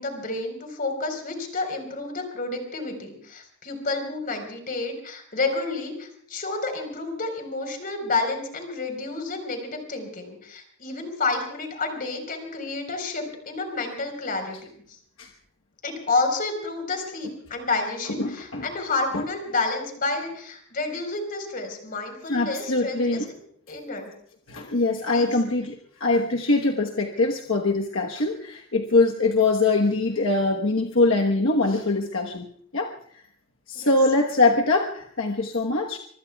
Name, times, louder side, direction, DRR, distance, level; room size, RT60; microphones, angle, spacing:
voice 1, 0.0-14.6 15.8-23.2 23.7-24.1 25.1-25.3 33.7-33.9, left 3 dB, 45° left, 4 dB, 4.4 m, -30 dB
voice 2, 18.2-18.7 19.1-19.2 22.3-23.3 24.5-25.7 26.0-32.4 32.7-32.9 33.7-36.0, left 3 dB, 75° left, 1 dB, 1.2 m, -23 dB
25.0 x 25.0 x 2.3 m, 0.63 s
head